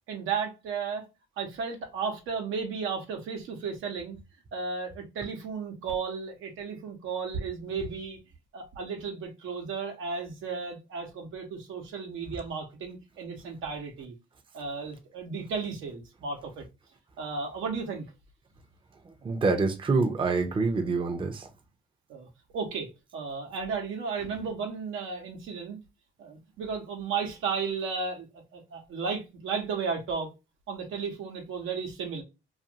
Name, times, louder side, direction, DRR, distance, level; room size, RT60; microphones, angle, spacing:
voice 1, 0.1-1.0 1.4-4.2 4.5-8.2 8.5-14.1 14.5-16.6 17.2-18.1 22.1-25.8 26.2-30.3 30.7-32.2, right 5 dB, 85° right, 0.9 m, -34 dB
voice 2, 19.2-21.5, right 4 dB, 25° right, 0.6 m, -26 dB
2.5 x 2.5 x 2.7 m
cardioid pair, 90°, 20 cm